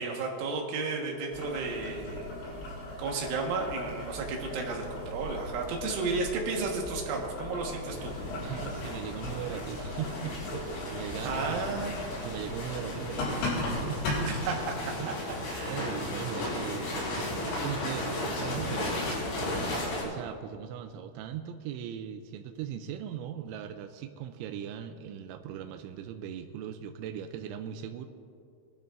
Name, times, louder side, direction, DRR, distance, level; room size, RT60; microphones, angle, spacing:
voice 1, 0.0-2.3 3.0-8.1 11.2-11.9 14.2-15.1 15.5-15.9, right 4 dB, 75° right, 0 dB, 3.8 m, -33 dB
Boiling, 1.3-14.6, left 2 dB, 75° left, 6.4 m, -38 dB
sound 1, 7.8-20.0, left 1 dB, 60° left, 5.1 m, -35 dB
voice 2, 8.4-14.4 15.0-19.2 20.0-28.1, right 9 dB, 90° right, 6 dB, 2.7 m, -39 dB
22.0 x 12.0 x 2.5 m, 2.4 s
omnidirectional pair, 5.9 m